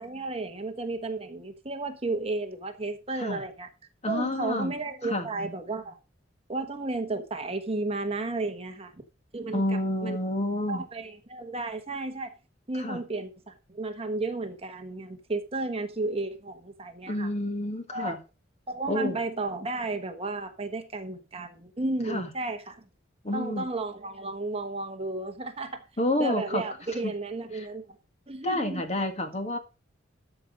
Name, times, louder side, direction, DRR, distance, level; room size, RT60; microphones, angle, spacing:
voice 1, 0.0-3.7 4.1-6.0 6.5-8.9 9.3-9.6 10.0-10.2 10.7-12.3 12.7-17.3 17.9-18.2 18.7-22.8 23.3-25.8 26.2-28.0 28.3-28.8, right 2 dB, 30° right, 1.2 m, -33 dB
voice 2, 4.0-5.3 9.5-10.8 12.7-13.0 17.1-18.2 18.9-19.2 22.1-22.3 23.2-23.7 26.0-26.6 27.5-27.7 28.4-29.6, left 1 dB, 35° left, 1.8 m, -29 dB
13.0 x 5.3 x 5.2 m
head